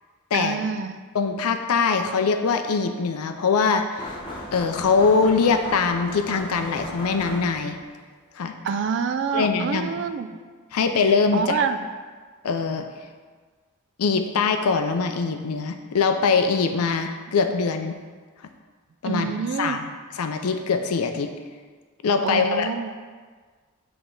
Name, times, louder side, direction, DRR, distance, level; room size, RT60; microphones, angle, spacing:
voice 1, 0.3-0.9 8.6-10.3 11.3-11.8 19.0-19.8 22.2-22.9, right 5 dB, 55° right, 9 dB, 0.3 m, -26 dB
voice 2, 1.1-4.1 4.5-7.8 8.4-8.5 9.3-9.9 10.7-11.6 12.4-12.9 14.0-18.0 19.0-21.3 22.0-22.7, left 5 dB, 85° left, 7 dB, 0.5 m, -22 dB
sound 1, 4.0-7.8, left 1 dB, 25° left, 0.9 m, -37 dB
7.9 x 3.4 x 3.8 m, 1.5 s
head